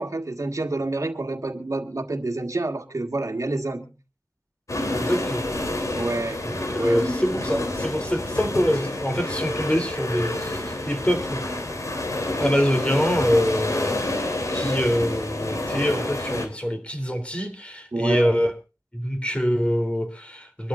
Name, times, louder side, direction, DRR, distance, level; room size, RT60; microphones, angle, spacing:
voice 1, 0.0-3.9 5.9-6.4 6.8-7.0 17.9-18.4, right 2 dB, 75° right, 1.6 m, -28 dB
sound 1, 4.7-16.5, left 1 dB, 75° left, 3.2 m, -28 dB
voice 2, 4.9-5.5 6.4-11.4 12.4-18.5 18.9-20.7, equal, 20° left, 3.3 m, -25 dB
25.0 x 13.0 x 2.5 m
wide cardioid pair, 55°, 5 cm